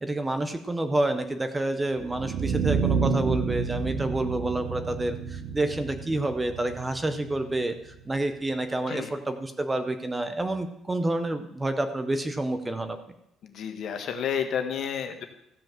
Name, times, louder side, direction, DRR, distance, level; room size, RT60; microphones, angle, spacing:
voice 1, 0.0-13.0, right 2 dB, 10° right, 9 dB, 0.6 m, -28 dB
sound 1, 2.0-8.0, right 5 dB, 60° right, 0.8 m, -30 dB
voice 2, 13.4-15.2, left 8 dB, 50° left, 6 dB, 1.3 m, -31 dB
14.5 x 5.2 x 7.4 m, 0.81 s
cardioid pair, 170°, 0 cm